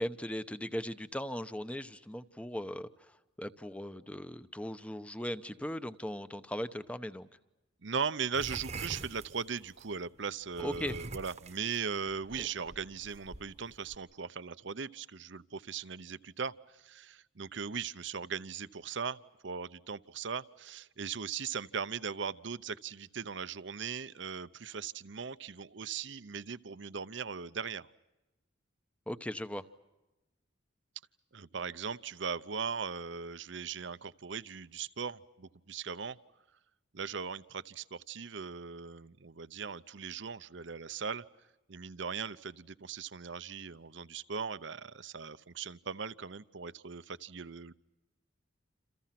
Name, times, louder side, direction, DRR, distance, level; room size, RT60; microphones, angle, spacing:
voice 1, 0.0-7.3 10.6-10.9 29.1-29.6, equal, 5° left, 12 dB, 0.9 m, -38 dB
voice 2, 7.8-19.2 19.4-27.9 31.3-36.2 36.9-41.2 41.7-47.7, right 6 dB, 65° right, 15 dB, 0.8 m, -39 dB
sound 1, 8.3-9.9 10.5-14.0, right 3 dB, 35° right, 1.1 m, -44 dB
28.5 x 28.0 x 6.0 m, 1.0 s
head